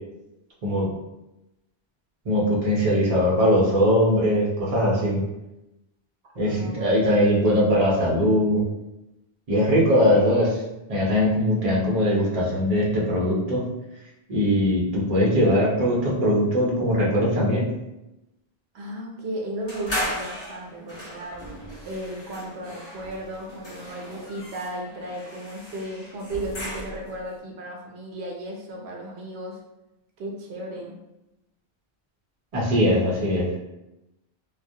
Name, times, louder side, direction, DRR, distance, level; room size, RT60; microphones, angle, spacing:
voice 1, 2.2-5.2 6.4-8.6 9.5-10.6 10.9-13.7 14.3-17.7 32.5-33.6, equal, 45° right, -4 dB, 0.6 m, -21 dB
voice 2, 6.4-7.3 18.7-29.6 30.2-31.0, right 1 dB, 80° right, -2 dB, 0.8 m, -35 dB
sound 1, 19.7-27.2, equal, 30° left, 0.7 m, -36 dB
2.2 x 2.1 x 2.6 m, 0.93 s
omnidirectional pair, 1.1 m